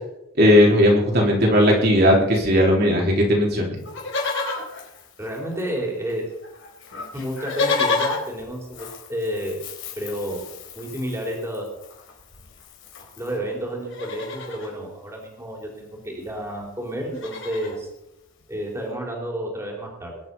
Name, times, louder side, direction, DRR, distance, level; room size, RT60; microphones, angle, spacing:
voice 1, 0.4-3.8, equal, 45° right, -2 dB, 3.7 m, -17 dB
Livestock farm animals working animals, 3.8-5.8 6.1-6.2 6.4-13.4 13.8-14.7 15.9-16.0 16.2-16.5 16.8-17.8 18.4-18.5, left 3 dB, 55° left, 4.1 m, -31 dB
voice 2, 5.2-6.3 7.1-9.6 10.0-10.4 10.8-11.7 13.2-17.9 18.5-20.2, equal, 10° right, 0 dB, 3.8 m, -30 dB
21.0 x 10.5 x 5.5 m, 0.92 s
head